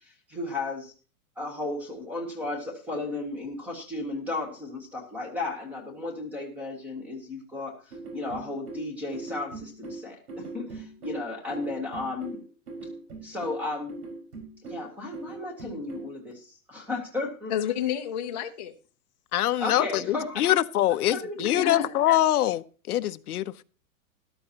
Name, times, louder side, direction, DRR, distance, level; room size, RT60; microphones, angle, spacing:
voice 1, 0.3-0.9 1.4-7.7 8.1-12.4 13.2-14.0 14.7-17.5 19.6-20.4 21.1-21.9, left 2 dB, 5° right, 4 dB, 0.9 m, -34 dB
sound 1, 7.9-16.1, right 3 dB, 75° right, 4.8 m, -40 dB
voice 2, 17.5-18.7 21.5-22.0, left 10 dB, 30° left, 2 dB, 0.6 m, -30 dB
voice 3, 19.3-23.6, left 13 dB, 80° left, 13 dB, 0.8 m, -24 dB
13.0 x 12.0 x 2.8 m, 0.37 s
supercardioid pair, 180°, 44 cm